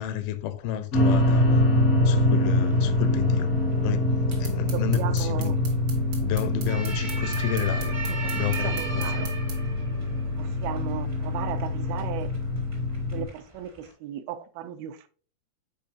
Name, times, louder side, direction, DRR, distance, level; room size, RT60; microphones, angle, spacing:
voice 1, 0.0-1.6 2.1-3.5 3.8-4.1 4.4-5.6 6.2-8.0 8.3-9.2, left 11 dB, 80° left, 2.4 m, -31 dB
sound 1, 0.9-13.2, left 1 dB, 55° left, 0.9 m, -24 dB
sound 2, 2.7-13.9, right 3 dB, 40° right, 0.6 m, -39 dB
sound 3, 4.3-9.6, right 5 dB, 65° right, 1.0 m, -42 dB
voice 2, 4.7-5.6 8.0-9.3 10.4-12.3 13.1-15.1, right 10 dB, 80° right, 2.3 m, -36 dB
7.7 x 4.7 x 2.7 m
omnidirectional pair, 4.4 m